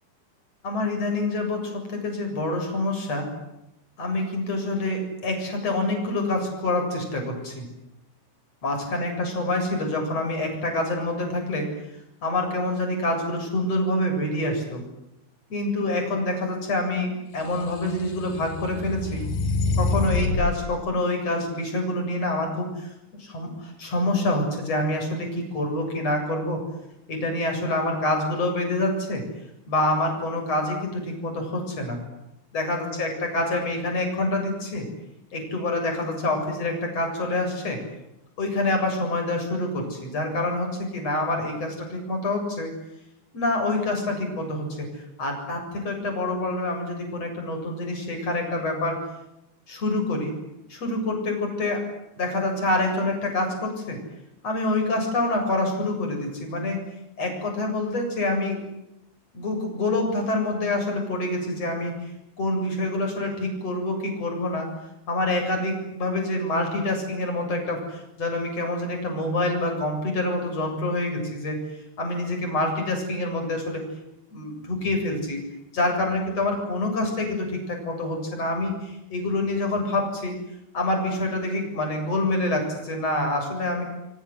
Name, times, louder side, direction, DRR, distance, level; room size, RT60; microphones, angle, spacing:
voice 1, 0.6-3.3 4.0-7.6 8.6-11.7 12.2-14.8 15.5-19.2 19.8-22.9 23.2-26.6 27.1-29.2 29.7-32.0 32.5-34.9 35.3-37.8 38.4-42.7 43.3-49.0 49.7-50.3 50.7-51.8 52.2-54.0 54.4-56.8 57.2-58.6 59.3-62.1 62.4-64.7 65.1-71.6 72.0-73.8 74.3-75.4 75.7-80.3 80.7-83.8, left 2 dB, 35° left, 3 dB, 8.5 m, -26 dB
sound 1, 17.6-20.6, left 3 dB, 60° left, 4.7 m, -26 dB
28.0 x 24.5 x 8.0 m, 0.88 s
omnidirectional pair, 4.7 m